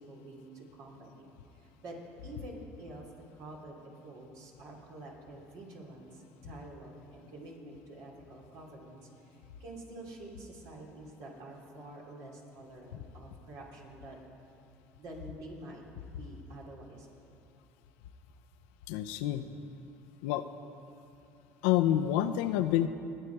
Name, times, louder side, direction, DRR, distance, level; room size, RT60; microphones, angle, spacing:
voice 1, 0.0-3.0 3.3-14.2 15.0-15.8 16.1-17.1, right 1 dB, 65° right, -2 dB, 3.0 m, -48 dB
voice 2, 18.9-19.4 20.2-20.4 21.6-22.9, left 12 dB, 75° left, 9 dB, 0.6 m, -28 dB
20.0 x 7.8 x 4.7 m, 2.7 s
hypercardioid pair, 75°, 7 cm